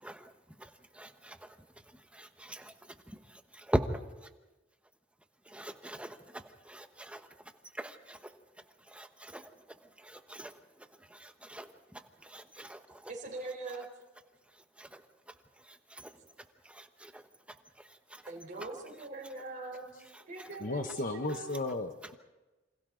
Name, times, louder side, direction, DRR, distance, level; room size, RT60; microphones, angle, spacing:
voice 1, 1.0-1.4 2.2-2.7 3.7-3.8 5.5-6.2 6.7-7.2 7.8-8.2 8.9-9.4 10.1-10.5 11.2-11.7 12.3-12.8 14.8-14.9 17.0-17.1, right 1 dB, 5° right, 1.2 m, -38 dB
voice 2, 13.1-13.9 18.3-19.9 20.3-21.6, right 2 dB, 45° right, 4.1 m, -42 dB
voice 3, 20.6-22.2, left 2 dB, 45° left, 0.9 m, -35 dB
28.0 x 26.5 x 3.9 m
head